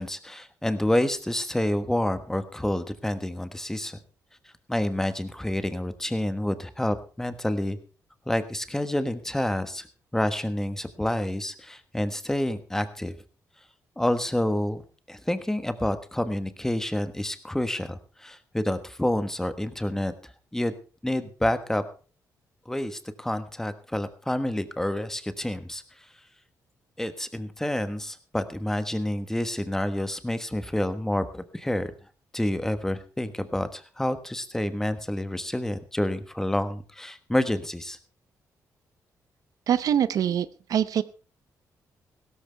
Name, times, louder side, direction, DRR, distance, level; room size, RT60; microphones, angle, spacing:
voice 1, 0.0-4.0 4.7-7.8 8.3-9.9 10.1-13.1 14.0-14.8 15.1-20.1 20.5-20.7 21.0-21.8 22.7-25.8 27.0-31.9 32.3-38.0, left 1 dB, 5° left, 10 dB, 1.3 m, -28 dB
voice 2, 39.7-41.0, right 9 dB, 70° right, 15 dB, 0.6 m, -24 dB
16.5 x 13.5 x 3.4 m, 0.37 s
cardioid pair, 105°, 6 cm